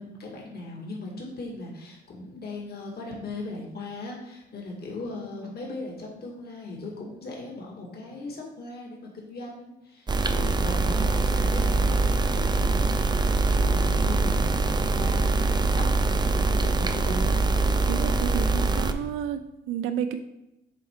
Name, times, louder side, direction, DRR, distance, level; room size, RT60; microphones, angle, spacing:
voice 1, 0.0-12.3 12.6-17.3, left 2 dB, 55° left, -2 dB, 1.9 m, -38 dB
sound 1, 10.1-18.9, right 3 dB, 20° right, 0.6 m, -23 dB
voice 2, 17.9-20.2, right 9 dB, 90° right, 8 dB, 0.4 m, -31 dB
7.5 x 4.3 x 3.7 m, 0.94 s
cardioid pair, 90°, 20 cm